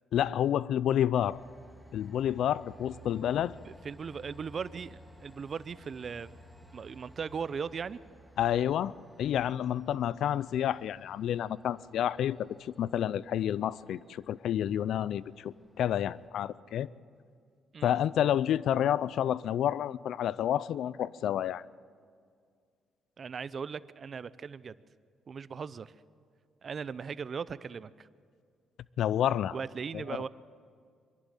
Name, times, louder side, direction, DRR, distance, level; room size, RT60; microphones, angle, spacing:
voice 1, 0.1-1.4 1.9-3.5 8.4-8.9 9.2-16.9 17.8-21.6 29.0-29.6 29.9-30.0, left 10 dB, 75° left, 20 dB, 0.4 m, -29 dB
Train, 1.1-16.3, right 1 dB, 5° left, 2.2 m, -56 dB
voice 2, 3.7-6.3 6.7-8.0 17.7-18.1 23.2-24.8 25.3-25.9 26.6-28.1 29.5-30.3, right 6 dB, 45° right, 17 dB, 0.6 m, -38 dB
25.0 x 11.5 x 9.2 m, 2.1 s
cardioid pair, 90°, 0 cm